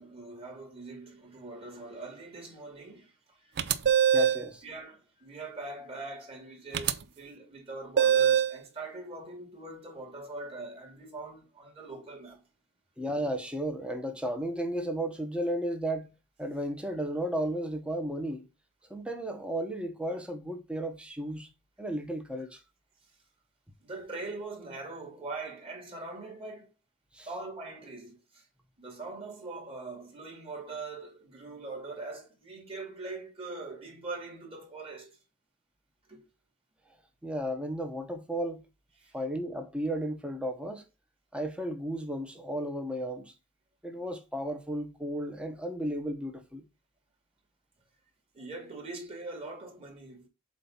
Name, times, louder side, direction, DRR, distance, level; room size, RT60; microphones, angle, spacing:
voice 1, 0.0-3.5 4.6-12.4 23.8-26.7 27.3-28.4 28.8-35.2 36.1-36.3 39.0-39.2 48.3-50.3, right 3 dB, 25° right, 2.3 m, -42 dB
sound 1, 3.6-4.5 6.7-6.9 8.0-8.6, right 9 dB, 50° right, 0.5 m, -23 dB
voice 2, 4.1-4.6 13.0-16.1 16.4-18.5 18.9-21.5 21.8-22.6 27.1-27.3 37.2-38.6 39.1-40.8 41.3-43.3 43.8-46.6, right 1 dB, 5° right, 1.1 m, -34 dB
7.6 x 2.8 x 5.6 m
head